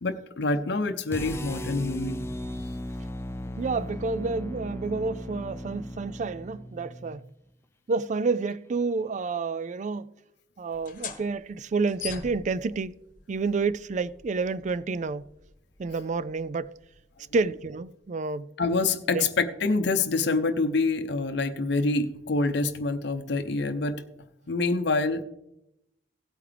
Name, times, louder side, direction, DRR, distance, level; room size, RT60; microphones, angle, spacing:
voice 1, 0.0-2.2 18.6-24.0 24.5-25.2, left 3 dB, 65° left, 0.7 m, -26 dB
sound 1, 1.1-7.2, left 1 dB, 15° left, 0.5 m, -37 dB
voice 2, 3.6-7.3 7.9-10.1 10.6-12.9 13.3-15.2 15.8-16.7 17.3-18.5 19.1-19.2, right 4 dB, 40° right, 0.4 m, -29 dB
sound 2, 10.7-18.0, left 7 dB, 45° left, 1.1 m, -45 dB
16.5 x 8.6 x 3.4 m
head